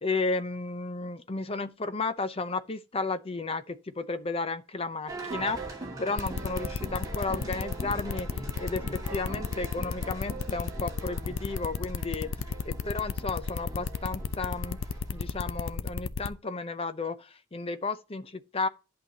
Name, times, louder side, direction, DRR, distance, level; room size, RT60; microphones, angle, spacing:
voice 1, 0.0-8.3 8.6-12.4 12.6-14.8 15.1-18.7, left 3 dB, 25° left, 0.6 m, -33 dB
sound 1, 5.1-15.8, right 2 dB, 15° right, 2.3 m, -42 dB
sound 2, 6.2-16.3, left 5 dB, 70° left, 0.5 m, -33 dB
11.0 x 5.8 x 2.9 m
head